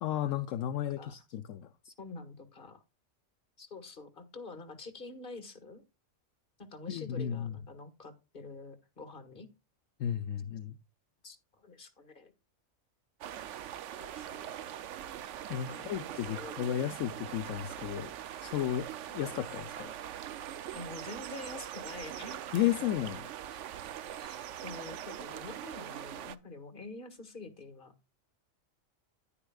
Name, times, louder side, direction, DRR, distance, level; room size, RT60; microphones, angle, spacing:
voice 1, 0.0-1.7 6.9-7.6 10.0-10.8 15.5-18.1 18.4-18.9 19.1-19.9 22.5-23.2, left 11 dB, 70° left, 1.0 m, -33 dB
voice 2, 0.7-1.2 1.8-2.8 3.6-5.8 6.6-9.5 11.2-12.3 14.0-14.5 15.7-16.6 20.7-22.5 22.8-23.0 23.5-23.6 24.2-27.9, left 3 dB, 40° left, 1.7 m, -47 dB
sound 1, 13.2-26.4, right 11 dB, 70° right, 0.9 m, -42 dB
10.0 x 9.7 x 2.3 m
omnidirectional pair, 1.4 m